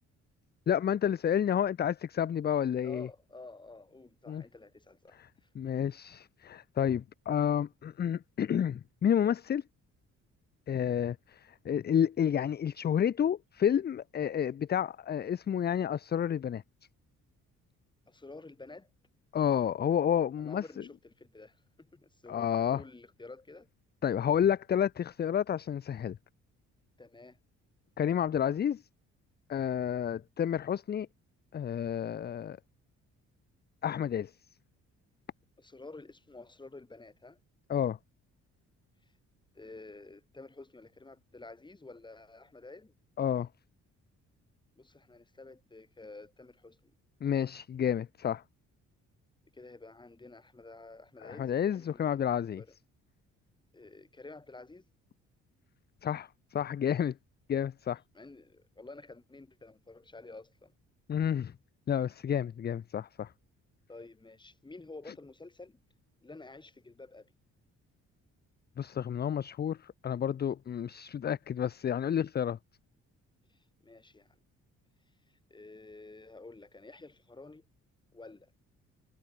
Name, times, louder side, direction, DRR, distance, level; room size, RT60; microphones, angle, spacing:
voice 1, 0.7-3.1 4.3-4.4 5.1-5.3 5.5-9.6 10.7-16.6 19.3-20.6 22.3-22.8 24.0-26.2 28.0-28.8 29.5-31.1 31.5-32.6 33.8-34.3 37.7-38.0 43.2-43.5 47.2-48.4 51.2-52.6 56.0-57.1 57.5-58.0 61.1-61.5 61.9-63.3 68.8-72.6, left 9 dB, 35° left, 0.5 m, -30 dB
voice 2, 2.8-5.8 10.8-11.0 18.1-18.9 20.4-23.7 27.0-27.4 35.6-37.4 39.5-42.9 44.8-46.9 49.5-52.1 52.6-52.7 53.7-54.8 58.1-60.7 63.9-65.8 66.2-67.3 73.5-74.4 75.5-77.7 78.1-78.5, left 3 dB, 15° left, 1.7 m, -50 dB
cardioid pair, 90°, 30 cm